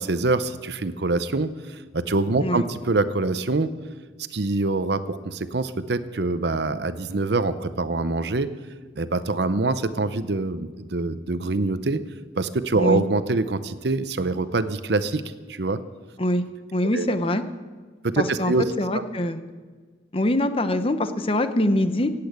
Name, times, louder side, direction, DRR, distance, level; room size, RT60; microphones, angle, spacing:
voice 1, 0.0-3.7 4.3-8.5 9.0-12.0 12.4-15.2 15.5-15.8 16.9-17.1 18.0-18.6 18.9-19.0, right 3 dB, 65° right, 13 dB, 0.8 m, -25 dB
voice 2, 16.7-17.4 18.2-18.5 18.8-19.4 20.1-22.1, left 1 dB, 30° left, 10 dB, 0.9 m, -23 dB
17.0 x 8.6 x 8.1 m, 1.4 s
head